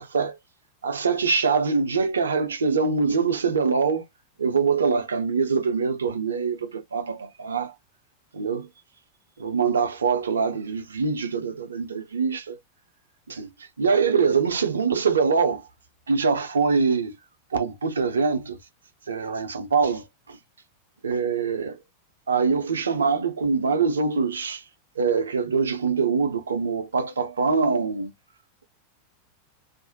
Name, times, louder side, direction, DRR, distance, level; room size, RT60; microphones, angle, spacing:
voice 1, 0.8-4.0 4.4-7.7 8.3-8.7 9.4-12.6 13.3-13.5 13.8-15.6 16.1-17.1 17.5-18.6 19.1-20.4 21.0-21.8 22.3-24.6 25.0-28.1, right 5 dB, 70° right, 0.5 m, -24 dB
2.5 x 2.0 x 2.6 m
figure-of-eight pair, 90°, 0 cm